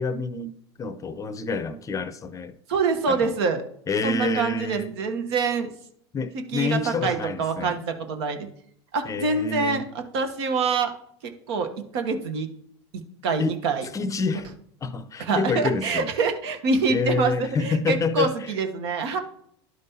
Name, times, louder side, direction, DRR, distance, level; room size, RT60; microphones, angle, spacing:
voice 1, 0.0-2.5 3.1-3.3 3.9-4.9 6.1-7.8 9.1-9.8 13.4-13.5 13.9-14.5 14.8-16.1 16.9-18.5, left 3 dB, 25° left, 0.6 m, -27 dB
voice 2, 2.7-3.6 4.0-5.7 6.3-8.5 8.9-10.9 11.2-12.5 13.2-13.9 15.2-19.2, right 4 dB, 75° right, 1.1 m, -26 dB
11.0 x 5.3 x 2.8 m
hypercardioid pair, 95°, 14 cm